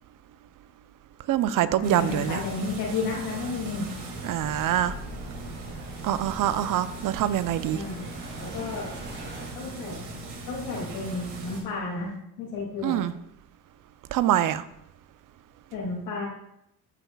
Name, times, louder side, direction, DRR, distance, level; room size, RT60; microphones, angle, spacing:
voice 1, 1.3-2.4 4.2-4.9 6.0-7.8 12.8-13.1 14.1-14.6, right 11 dB, 55° right, 0.6 m, -25 dB
voice 2, 1.8-3.9 7.7-8.1 8.4-8.9 9.5-10.0 10.5-13.0 15.7-16.3, left 3 dB, 85° left, 2.4 m, -32 dB
sound 1, 1.8-11.6, right 2 dB, 75° right, 2.2 m, -39 dB
sound 2, 4.4-9.5, right 1 dB, 25° right, 2.5 m, -43 dB
13.0 x 5.7 x 2.3 m
supercardioid pair, 85°, 40 cm